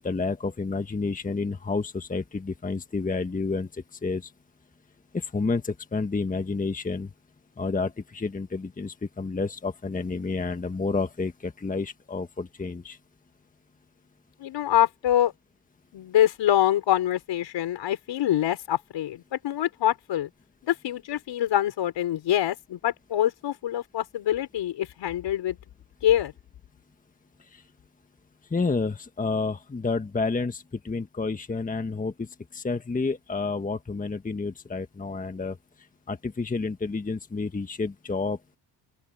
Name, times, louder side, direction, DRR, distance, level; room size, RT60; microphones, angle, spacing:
voice 1, 0.0-3.7 4.0-4.3 5.1-7.1 7.6-13.0 28.5-32.3 32.5-35.6 36.1-38.4, left 4 dB, 15° left, 1.4 m, -30 dB
voice 2, 14.4-15.3 15.9-20.3 20.6-25.6 26.0-26.3, left 12 dB, 65° left, 5.2 m, -25 dB
open air
cardioid pair, 100°, 46 cm